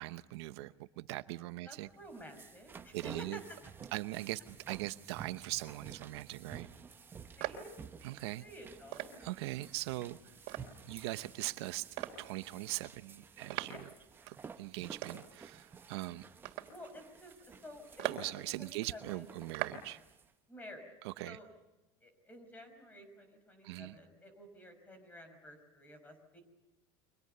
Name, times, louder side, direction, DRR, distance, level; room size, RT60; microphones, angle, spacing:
voice 1, 0.0-1.9 2.9-3.4 3.9-6.7 8.0-8.4 9.2-10.3 10.9-11.9 12.2-13.9 14.3-16.2 18.0-20.0 21.0-21.4 23.6-24.0, right 18 dB, 80° right, 12 dB, 0.9 m, -41 dB
voice 2, 1.6-3.4 7.4-7.8 8.4-9.1 13.7-13.8 16.6-19.2 20.5-20.9 21.3-21.5 22.0-26.4, equal, 10° left, 8 dB, 5.7 m, -52 dB
sound 1, 1.9-20.3, right 6 dB, 15° right, 0.9 m, -53 dB
sound 2, 7.4-20.1, right 14 dB, 60° right, 3.4 m, -44 dB
30.0 x 25.0 x 6.8 m, 0.98 s
supercardioid pair, 160°, 14 cm